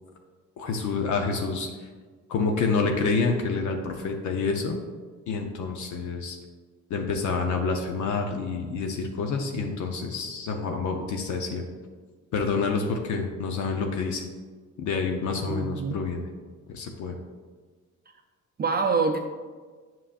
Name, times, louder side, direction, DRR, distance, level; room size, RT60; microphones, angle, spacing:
voice 1, 0.6-1.7 2.3-4.8 5.3-6.4 6.9-11.6 12.3-14.2 14.8-16.2 16.7-17.2, left 4 dB, 75° left, 3 dB, 0.7 m, -28 dB
voice 2, 15.4-16.0 18.6-19.2, right 4 dB, 35° right, 4 dB, 0.4 m, -25 dB
7.7 x 5.6 x 2.5 m, 1.5 s
cardioid pair, 90°, 30 cm